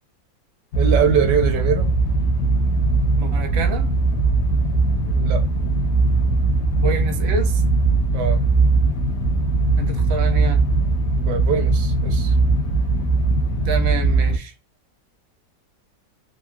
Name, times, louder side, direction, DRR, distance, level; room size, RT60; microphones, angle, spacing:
sound 1, 0.7-14.4, right 3 dB, 70° left, 0.8 m, -19 dB
voice 1, 0.8-1.9 5.1-5.5 8.1-8.4 11.2-12.3, right 7 dB, 75° right, 1.2 m, -22 dB
voice 2, 3.2-3.8 6.8-7.6 9.8-10.6 13.7-14.5, right 4 dB, 60° right, 0.7 m, -27 dB
3.6 x 2.1 x 2.2 m
omnidirectional pair, 1.9 m